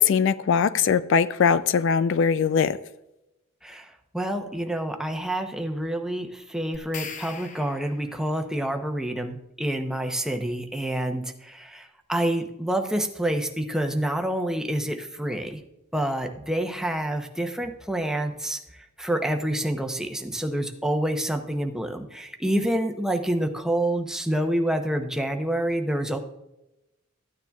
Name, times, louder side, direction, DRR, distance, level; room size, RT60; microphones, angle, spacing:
voice 1, 0.0-2.8, left 6 dB, 60° left, 15 dB, 0.3 m, -21 dB
voice 2, 3.6-15.6 15.9-26.2, right 1 dB, 5° right, 4 dB, 0.7 m, -28 dB
sound 1, 6.7-8.3, left 5 dB, 35° left, 0.7 m, -40 dB
14.5 x 9.5 x 2.3 m, 0.92 s
head